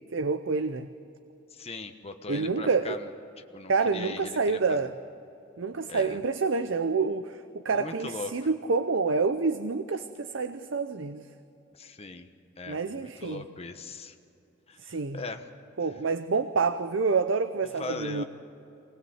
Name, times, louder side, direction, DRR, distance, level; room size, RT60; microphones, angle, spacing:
voice 1, 0.1-0.9 2.3-3.0 3.7-4.9 5.6-11.2 12.7-13.4 14.8-15.2 15.8-18.2, right 4 dB, 70° right, 10 dB, 0.7 m, -28 dB
voice 2, 1.5-3.1 3.5-4.8 5.9-6.2 7.7-8.3 11.7-12.3 12.6-14.1 14.7-14.8 15.1-15.5 17.8-18.2, left 3 dB, 30° left, 6 dB, 1.2 m, -39 dB
24.0 x 19.5 x 8.0 m, 2.9 s
head